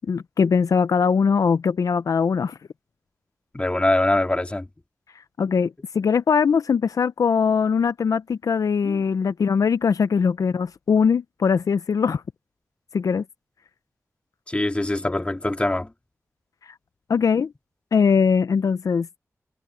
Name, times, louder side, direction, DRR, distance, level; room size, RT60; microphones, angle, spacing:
voice 1, 0.1-2.6 5.4-12.2 12.9-13.2 17.1-17.5 17.9-19.1, left 6 dB, 85° left, 0.5 m, -21 dB
voice 2, 3.5-4.7 8.8-9.0 14.5-15.9, left 1 dB, 20° left, 2.0 m, -23 dB
wide cardioid pair, 105°, 6 cm